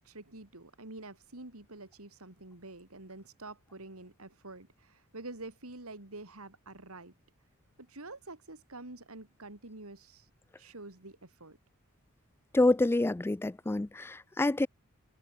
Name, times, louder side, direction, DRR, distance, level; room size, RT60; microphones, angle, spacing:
voice 1, 0.0-7.1 7.8-10.3 10.6-11.6, right 2 dB, 70° right, 3.1 m, -47 dB
voice 2, 12.5-14.7, left 2 dB, 10° left, 0.3 m, -27 dB
head